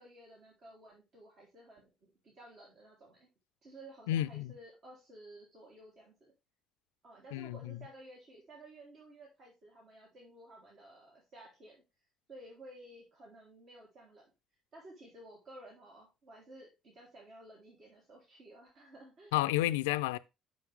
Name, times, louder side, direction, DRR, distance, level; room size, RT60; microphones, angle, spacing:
voice 1, 0.0-3.3 3.6-6.3 7.0-11.8 12.3-14.3 14.7-19.3, right 1 dB, 50° right, 3.5 m, -54 dB
voice 2, 4.1-4.5 7.3-7.6 19.3-20.2, left 14 dB, 70° left, 0.4 m, -30 dB
7.2 x 6.7 x 3.5 m
figure-of-eight pair, 50°, 0 cm